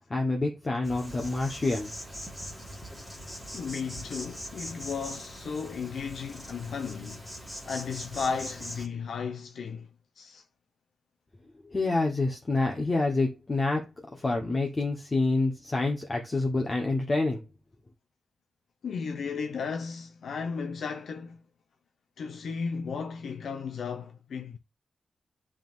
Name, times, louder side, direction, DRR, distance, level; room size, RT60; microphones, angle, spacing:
voice 1, 0.1-1.9 11.7-17.4, left 2 dB, 30° left, 1.2 m, -27 dB
Insect, 0.8-8.9, equal, ahead, 2.2 m, -42 dB
voice 2, 3.5-7.2 7.7-9.9 10.2-10.4 18.8-21.4 22.2-24.6, left 5 dB, 75° left, 0.6 m, -35 dB
10.0 x 3.7 x 2.6 m
wide cardioid pair, 110°, 0 cm